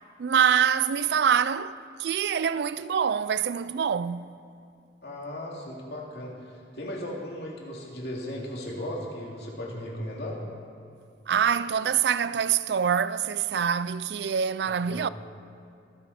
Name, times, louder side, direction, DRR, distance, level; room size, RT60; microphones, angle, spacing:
voice 1, 0.2-4.3 11.3-15.1, right 7 dB, 65° right, 0.4 m, -25 dB
voice 2, 5.0-10.4 14.6-15.1, left 1 dB, 60° left, 2.7 m, -37 dB
23.0 x 9.7 x 4.3 m
head